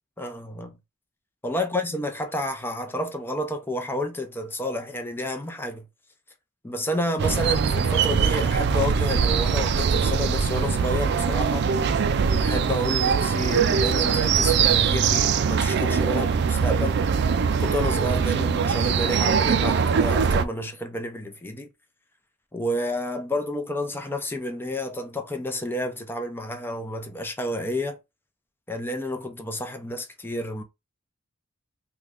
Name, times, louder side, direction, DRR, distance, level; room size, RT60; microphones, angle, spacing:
voice 1, 0.2-0.8 1.4-5.9 6.6-11.9 12.4-17.0 17.6-21.7 22.5-28.0 28.7-30.6, left 1 dB, 10° left, 0.5 m, -30 dB
sound 1, 7.2-20.4, right 6 dB, 55° right, 0.3 m, -22 dB
3.1 x 2.3 x 3.6 m
head